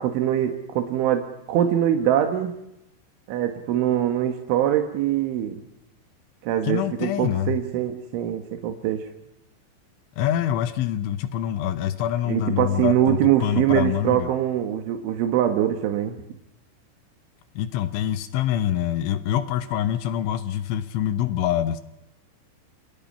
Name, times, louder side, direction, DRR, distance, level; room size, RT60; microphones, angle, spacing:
voice 1, 0.0-2.5 3.3-5.6 6.4-9.0 12.3-16.2, right 11 dB, 80° right, 6 dB, 4.0 m, -23 dB
voice 2, 6.6-7.6 10.2-14.3 17.6-21.8, left 11 dB, 80° left, 11 dB, 3.5 m, -25 dB
29.0 x 28.0 x 5.6 m, 0.84 s
omnidirectional pair, 5.5 m